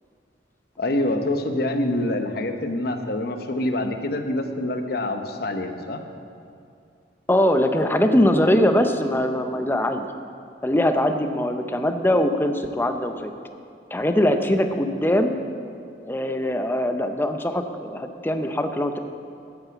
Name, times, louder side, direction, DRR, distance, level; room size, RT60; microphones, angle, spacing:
voice 1, 0.8-6.0, left 1 dB, 60° left, 6 dB, 0.9 m, -26 dB
voice 2, 7.3-10.1 10.6-13.3 13.9-15.4 16.0-19.0, left 1 dB, 10° left, 7 dB, 0.6 m, -22 dB
9.5 x 8.9 x 7.2 m, 2.5 s
head